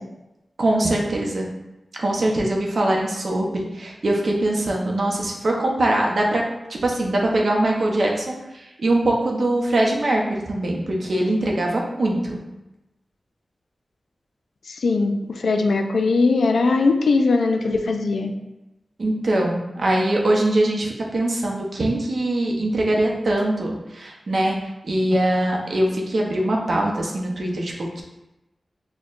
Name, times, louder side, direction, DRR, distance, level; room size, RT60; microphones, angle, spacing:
voice 1, 0.6-1.5 2.0-6.4 6.7-12.4 19.0-28.0, right 1 dB, 65° right, -1 dB, 0.6 m, -22 dB
voice 2, 14.7-18.3, left 3 dB, 90° left, 5 dB, 0.3 m, -20 dB
4.3 x 2.1 x 2.4 m, 0.98 s
wide cardioid pair, 80°, 0 cm